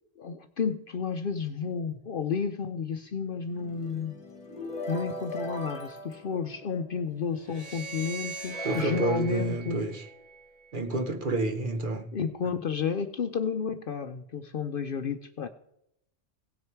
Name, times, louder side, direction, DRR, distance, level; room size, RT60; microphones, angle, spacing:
voice 1, 0.2-4.2 4.9-9.8 12.1-15.5, left 6 dB, 55° left, 0.7 m, -31 dB
sound 1, 3.4-7.1 7.9-8.0 8.5-10.4, left 1 dB, 30° left, 1.7 m, -40 dB
sound 2, 7.4-10.7, right 4 dB, 30° right, 2.8 m, -41 dB
voice 2, 8.6-10.0 10.7-12.1, right 2 dB, 45° right, 1.0 m, -29 dB
17.5 x 6.4 x 4.5 m
omnidirectional pair, 1.3 m